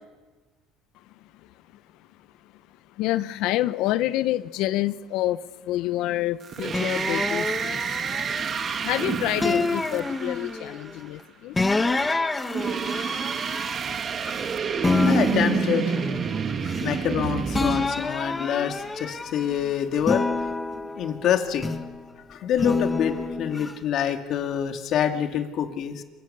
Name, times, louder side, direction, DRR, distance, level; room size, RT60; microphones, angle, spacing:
voice 1, 3.0-8.0 8.8-11.6, left 15 dB, 70° left, 14 dB, 0.8 m, -27 dB
sound 1, 6.4-10.9 12.4-17.9, right 6 dB, 40° right, 1.6 m, -28 dB
sound 2, 6.7-8.9 9.4-10.8 11.6-14.5 14.8-17.2 17.5-19.5 20.0-22.0 22.6-23.7, left 3 dB, 15° left, 1.6 m, -28 dB
voice 2, 14.7-16.2 16.7-20.3 20.7-21.8 22.3-26.0, left 9 dB, 55° left, 5 dB, 2.5 m, -27 dB
27.0 x 23.5 x 6.8 m, 1.3 s
cardioid pair, 115°, 0 cm